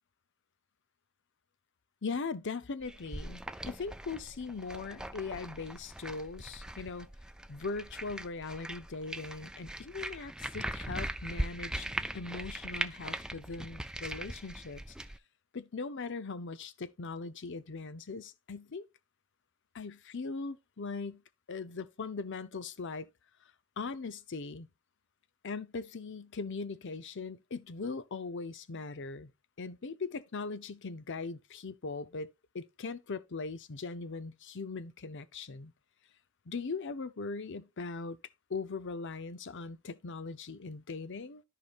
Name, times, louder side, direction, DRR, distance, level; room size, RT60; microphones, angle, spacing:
voice 1, 2.0-7.1 7.5-11.9 12.1-14.9 15.5-18.8 19.7-21.2 21.5-23.1 23.8-24.7 25.4-29.3 29.6-35.7 36.5-38.2 38.5-41.4, left 4 dB, 55° left, 0.7 m, -40 dB
sound 1, 2.8-15.2, right 1 dB, 5° right, 0.4 m, -40 dB
13.5 x 4.9 x 2.4 m
head